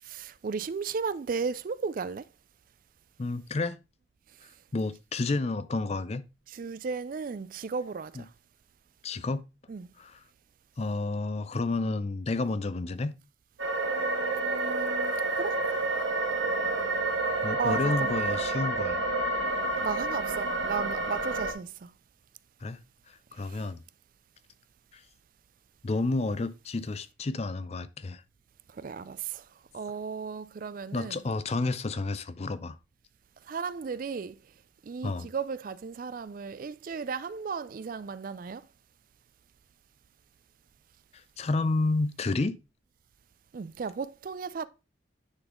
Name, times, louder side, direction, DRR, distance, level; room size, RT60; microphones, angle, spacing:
voice 1, 0.1-2.2 6.5-8.1 9.7-9.9 13.9-15.5 17.6-18.1 19.8-21.9 28.8-29.4 29.7-31.2 33.5-34.4 34.9-38.6 43.5-44.7, right 5 dB, 45° right, 0.3 m, -35 dB
voice 2, 3.2-3.8 4.7-6.2 8.1-8.2 9.0-9.4 10.0-10.2 10.8-13.2 17.4-19.0 22.6-22.8 23.1-23.8 24.9-25.0 25.8-28.2 30.9-32.8 35.0-35.3 41.4-42.6, left 3 dB, 30° left, 0.4 m, -30 dB
sound 1, 13.6-21.5, right 2 dB, 75° right, 1.5 m, -29 dB
9.7 x 4.0 x 3.6 m
head